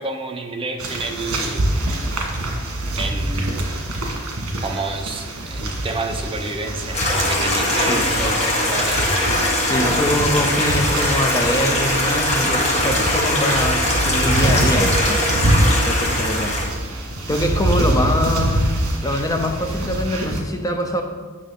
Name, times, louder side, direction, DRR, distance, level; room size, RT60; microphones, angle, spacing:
voice 1, 0.0-1.8 2.2-2.3 2.9-3.8 4.6-9.3, right 2 dB, 25° right, 3 dB, 0.7 m, -29 dB
sound 1, 0.8-20.4, right 1 dB, 70° right, 1.6 m, -25 dB
Stream, 6.9-16.7, left 1 dB, 30° left, 1.6 m, -21 dB
Hiss, 8.0-10.0, left 2 dB, 55° left, 2.3 m, -37 dB
voice 2, 9.6-16.6 17.3-21.0, left 1 dB, 15° left, 4 dB, 0.6 m, -23 dB
8.9 x 6.3 x 3.7 m, 1.4 s
head